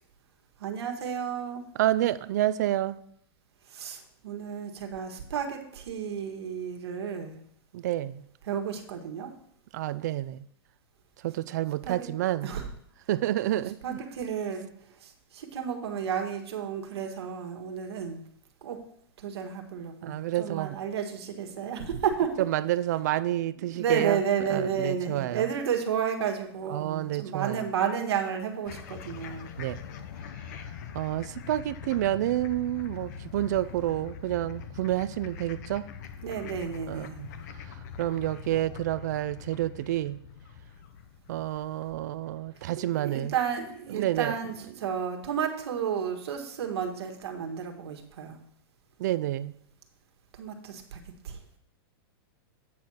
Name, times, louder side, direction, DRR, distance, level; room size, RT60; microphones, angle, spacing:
voice 1, 0.6-1.6 3.7-7.4 8.4-9.3 11.8-12.1 12.4-12.7 13.5-18.2 18.6-18.8 19.2-22.5 23.5-29.5 36.2-37.2 43.0-48.4 50.3-51.4, right 7 dB, 90° right, 1.5 m, -32 dB
voice 2, 1.8-3.0 7.7-8.2 9.7-10.4 11.2-12.5 13.1-14.0 20.0-20.8 22.4-24.2 24.5-25.4 26.7-27.6 29.6-29.8 30.9-35.9 36.9-37.3 38.0-40.2 41.3-43.3 43.9-44.3 49.0-49.5, right 14 dB, 45° right, 0.4 m, -29 dB
sound 1, 28.7-44.0, left 7 dB, 45° left, 0.7 m, -43 dB
8.4 x 4.3 x 6.3 m
supercardioid pair, 175°, 13 cm